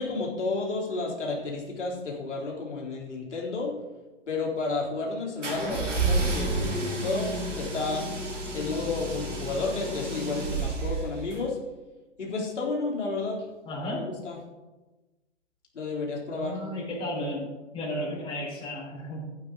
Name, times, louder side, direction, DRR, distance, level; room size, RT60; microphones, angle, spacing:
voice 1, 0.0-3.8 4.3-8.1 8.5-11.6 12.2-13.5 13.9-14.4 15.7-16.6, left 3 dB, 75° left, -3 dB, 3.8 m, -31 dB
sound 1, 5.4-11.4, right 2 dB, 90° right, 3.6 m, -30 dB
voice 2, 5.5-5.8 13.7-14.0 16.3-17.5 17.7-19.3, left 1 dB, 15° left, -5 dB, 4.2 m, -33 dB
12.5 x 8.9 x 3.9 m, 1.1 s
hypercardioid pair, 135°, 35 cm